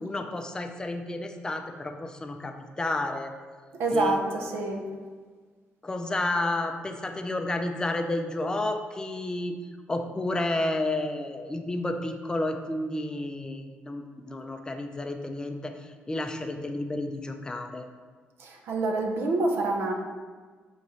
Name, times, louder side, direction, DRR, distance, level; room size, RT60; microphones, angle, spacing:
voice 1, 0.0-3.3 3.9-4.2 5.8-9.5 9.9-17.9, left 2 dB, 20° left, 5 dB, 0.3 m, -31 dB
voice 2, 3.8-4.9 18.4-19.9, right 2 dB, 80° right, 2 dB, 0.5 m, -27 dB
4.8 x 2.9 x 2.7 m, 1.5 s
cardioid pair, 110°, 4 cm